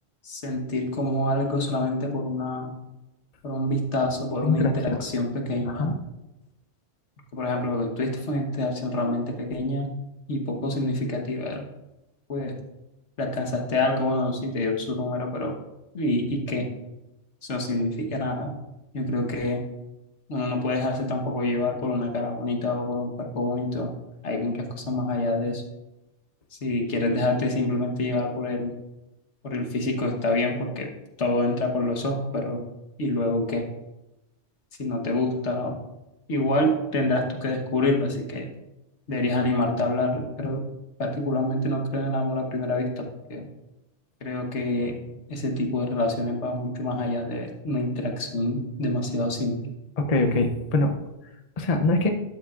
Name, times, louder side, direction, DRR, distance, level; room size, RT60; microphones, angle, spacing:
voice 1, 0.2-2.7 3.4-5.9 7.3-10.0 10.3-11.7 12.3-12.5 13.2-15.5 15.9-16.7 17.4-18.6 18.9-19.6 20.3-23.9 24.2-25.6 26.6-28.7 29.4-30.9 31.2-32.6 33.0-33.7 34.8-35.8 36.3-38.5 39.1-40.6 41.0-43.0 43.3-43.5 44.2-44.9 45.3-49.7, left 2 dB, 75° left, 3 dB, 1.5 m, -27 dB
voice 2, 4.4-5.0 5.7-5.9 50.0-50.9 51.6-52.1, left 2 dB, 35° left, 5 dB, 0.8 m, -23 dB
12.0 x 7.5 x 2.5 m, 0.96 s
omnidirectional pair, 1.2 m